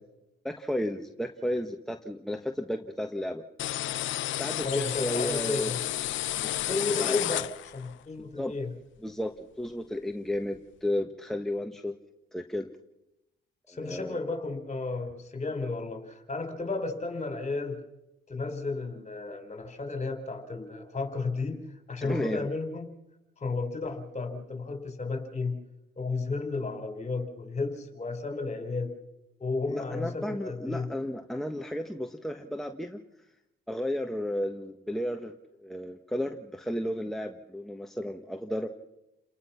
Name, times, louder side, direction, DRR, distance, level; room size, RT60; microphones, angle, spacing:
voice 1, 0.4-3.4 4.4-5.7 7.0-7.2 8.2-8.5 9.0-9.3 9.6-11.9 12.3-12.7 13.7-14.2 22.0-22.4 29.7-33.0 33.7-35.3 35.6-38.7, left 1 dB, ahead, 4 dB, 1.4 m, -33 dB
sound 1, 3.6-7.9, left 14 dB, 75° left, 0.7 m, -31 dB
voice 2, 4.6-5.8 6.7-8.7 13.7-17.8 18.3-21.6 21.9-22.9 23.4-25.6 26.0-28.9 29.4-30.9, left 3 dB, 35° left, 6 dB, 4.8 m, -33 dB
30.0 x 19.5 x 5.9 m, 0.91 s
cardioid pair, 90°, 20 cm